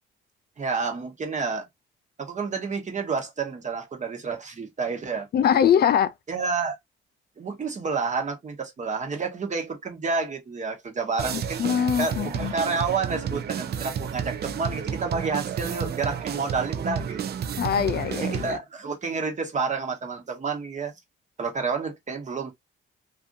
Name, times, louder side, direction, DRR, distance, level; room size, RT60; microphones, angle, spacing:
voice 1, 0.6-1.7 2.2-5.3 6.3-6.7 7.4-11.7 12.0-17.4 18.2-20.9 21.4-22.5, right 4 dB, 35° right, 1.1 m, -29 dB
voice 2, 5.3-6.1 11.6-12.5 17.6-18.5, left 8 dB, 55° left, 0.4 m, -22 dB
sound 1, 11.2-18.6, right 7 dB, 55° right, 0.5 m, -31 dB
2.6 x 2.6 x 2.6 m
cardioid pair, 90°, 20 cm